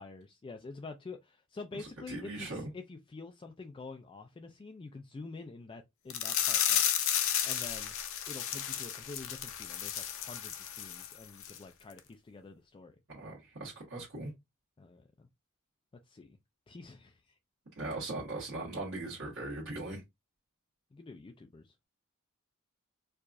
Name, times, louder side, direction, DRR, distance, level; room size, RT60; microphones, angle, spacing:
voice 1, 0.0-6.8 7.4-7.9 8.3-13.0 14.8-15.3 16.1-16.4 16.7-17.3 20.9-21.7, left 3 dB, 25° left, 0.3 m, -47 dB
voice 2, 1.8-2.7 13.1-14.3 17.8-20.0, right 2 dB, 60° right, 1.4 m, -39 dB
sound 1, 6.1-11.1 11.4-11.6 12.0-12.1, left 9 dB, 65° left, 0.7 m, -32 dB
4.6 x 2.4 x 2.5 m
head